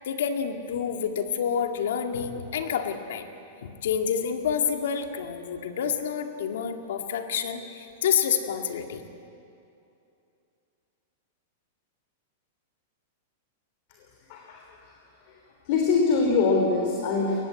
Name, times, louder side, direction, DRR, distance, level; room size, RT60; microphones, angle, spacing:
voice 1, 0.1-3.2 3.6-9.0, left 7 dB, 75° left, 5 dB, 2.2 m, -28 dB
voice 2, 15.7-17.3, left 4 dB, 45° left, 1 dB, 3.4 m, -23 dB
23.0 x 19.5 x 8.5 m, 2.7 s
supercardioid pair, 160°, 0 cm